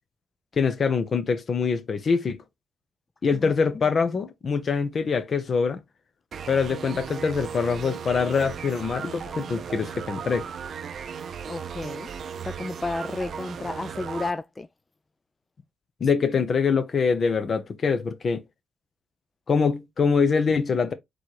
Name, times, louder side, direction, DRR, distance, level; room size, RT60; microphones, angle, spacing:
voice 1, 0.6-2.4 3.2-5.8 6.5-10.5 16.0-18.4 19.5-20.9, left 5 dB, 55° left, 0.7 m, -24 dB
sound 1, 6.3-14.3, right 7 dB, 60° right, 0.5 m, -36 dB
voice 2, 11.5-12.1 12.4-14.7, left 2 dB, 30° left, 0.4 m, -32 dB
4.2 x 3.0 x 3.1 m
supercardioid pair, 60°, 0 cm